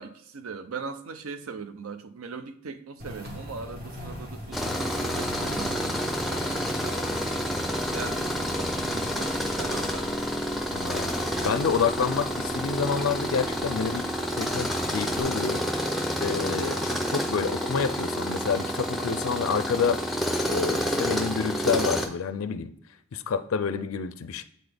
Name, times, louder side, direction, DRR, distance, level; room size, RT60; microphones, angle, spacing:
voice 1, 0.0-7.6 7.9-10.1 16.7-17.0, right 5 dB, 85° right, 0.5 m, -40 dB
sound 1, 3.0-15.2, equal, 45° right, 1.3 m, -42 dB
Tools, 4.5-22.1, equal, ahead, 0.5 m, -29 dB
voice 2, 10.7-11.1 11.4-15.6 16.2-20.0 20.5-22.7 23.1-24.4, left 6 dB, 80° left, 0.4 m, -28 dB
7.6 x 3.9 x 3.4 m
head